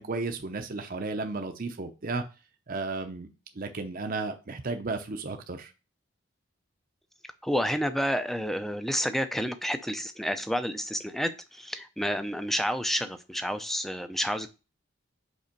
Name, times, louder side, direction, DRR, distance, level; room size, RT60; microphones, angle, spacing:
voice 1, 0.0-2.2 2.7-3.3 3.6-5.7, right 3 dB, 45° right, 6 dB, 0.7 m, -33 dB
voice 2, 7.4-14.5, equal, ahead, 9 dB, 0.5 m, -30 dB
5.2 x 4.1 x 5.2 m, 0.31 s
head